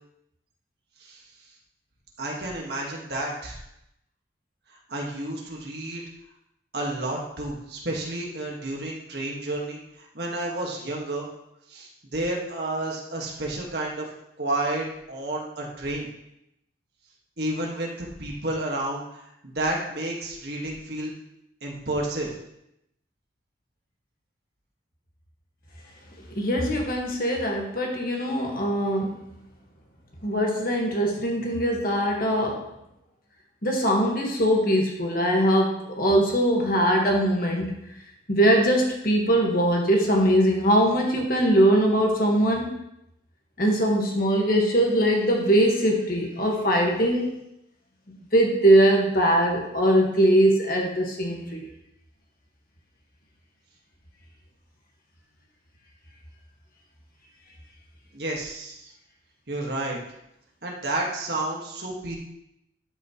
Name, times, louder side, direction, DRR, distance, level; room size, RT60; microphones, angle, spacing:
voice 1, 2.2-3.6 4.7-6.0 6.7-11.3 11.7-14.1 14.4-16.1 17.4-21.1 21.6-22.4 58.1-58.9 59.5-60.0 60.6-62.2, right 1 dB, 60° right, -2 dB, 1.8 m, -31 dB
voice 2, 26.4-29.1 30.2-32.7 33.6-37.8 38.3-42.8 43.6-47.4 48.1-51.7, right 1 dB, 50° left, 0 dB, 1.6 m, -21 dB
12.0 x 5.7 x 3.1 m, 0.82 s
head